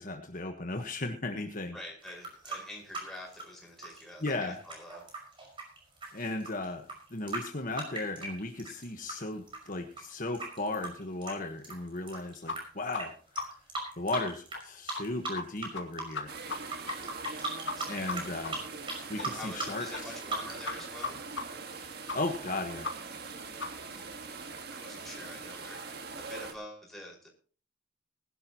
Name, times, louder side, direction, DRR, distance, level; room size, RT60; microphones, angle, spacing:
voice 1, 0.0-1.8 4.2-4.6 6.1-6.9 7.1-13.1 14.0-16.3 17.9-18.6 19.1-19.9 22.1-22.9, left 2 dB, 45° left, 4 dB, 1.3 m, -35 dB
voice 2, 1.7-5.1 17.8-18.4 19.2-21.2 24.4-25.8 26.1-27.3, left 1 dB, ahead, -2 dB, 5.5 m, -46 dB
sound 1, 2.0-9.1 9.5-12.6 12.9-13.1 13.4-14.6 14.9-15.7 15.9-20.8, right 3 dB, 25° right, 5.5 m, -38 dB
sound 2, 12.5-12.6 12.9-13.0 13.4-13.5 13.8-13.9 14.2-14.3 14.5-14.6 14.9-15.0 15.3-15.4 15.7-15.8 16.1-16.6 16.9-17.0 17.2-17.3 17.7-17.8 18.1-18.2 18.4-18.5 18.8-18.9 19.2-19.3 19.5-19.6 19.9-20.0 20.3-20.4 20.6-20.7 21.0-21.1 21.4-21.5 21.7-21.8 22.1-22.2 22.5-22.6 22.8-22.9 23.2-23.3 23.6-23.7 24.0-24.1, left 4 dB, 75° left, 2.3 m, -35 dB
sound 3, 16.3-26.5, right 4 dB, 55° right, 1.8 m, -43 dB
20.5 x 11.5 x 3.0 m, 0.42 s
head